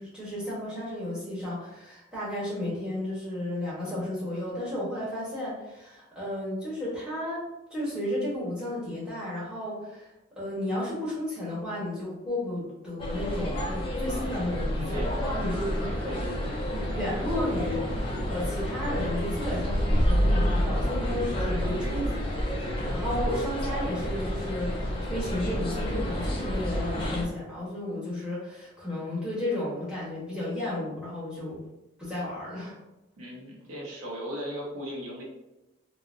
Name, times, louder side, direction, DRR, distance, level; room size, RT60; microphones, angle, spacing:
voice 1, 0.0-10.1 10.3-15.9 16.7-31.6 32.0-32.7, left 1 dB, 5° right, -9 dB, 1.1 m, -33 dB
sound 1, 13.0-27.2, equal, 25° left, 0.5 m, -30 dB
voice 2, 16.0-16.4 16.9-17.0 21.8-22.1 33.2-35.2, equal, 85° right, -3 dB, 0.8 m, -37 dB
sound 2, 19.8-25.3, equal, 55° left, 1.2 m, -29 dB
3.8 x 2.0 x 2.5 m, 0.97 s
head